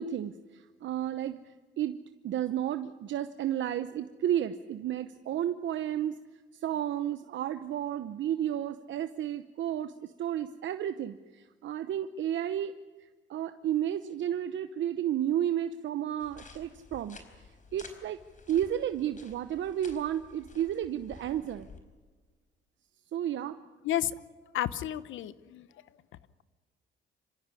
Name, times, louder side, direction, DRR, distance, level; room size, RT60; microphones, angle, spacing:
voice 1, 0.0-6.2 6.5-12.7 13.0-17.2 17.7-18.2 18.5-21.7 23.1-23.6, right 10 dB, 70° right, 10 dB, 0.9 m, -32 dB
sound 1, 16.2-21.8, left 4 dB, 40° left, 4.3 m, -52 dB
voice 2, 23.8-24.1 24.5-25.7, left 12 dB, 80° left, 15 dB, 1.0 m, -31 dB
27.0 x 15.5 x 9.9 m, 1.4 s
cardioid pair, 90°, 20 cm